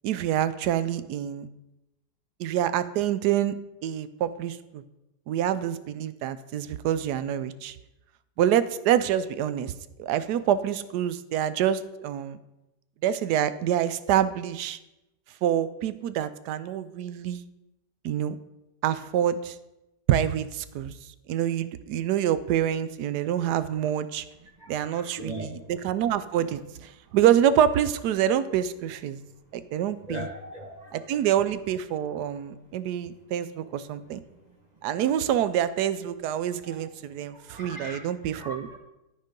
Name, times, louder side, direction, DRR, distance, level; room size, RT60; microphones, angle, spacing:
voice 1, 0.0-1.5 2.4-3.5 3.8-4.8 5.3-7.8 8.4-9.7 10.0-12.4 13.0-14.8 15.4-17.4 18.0-18.4 18.8-19.6 20.1-20.9 21.3-24.3 24.7-29.2 29.5-30.3 30.9-34.2 34.8-38.7, right 10 dB, 75° right, 14 dB, 1.1 m, -26 dB
voice 2, 24.8-25.5 30.1-30.9 36.7-36.8 37.5-38.0 38.4-38.8, equal, 25° right, 0 dB, 1.1 m, -38 dB
12.5 x 4.5 x 5.2 m, 0.94 s
omnidirectional pair, 1.9 m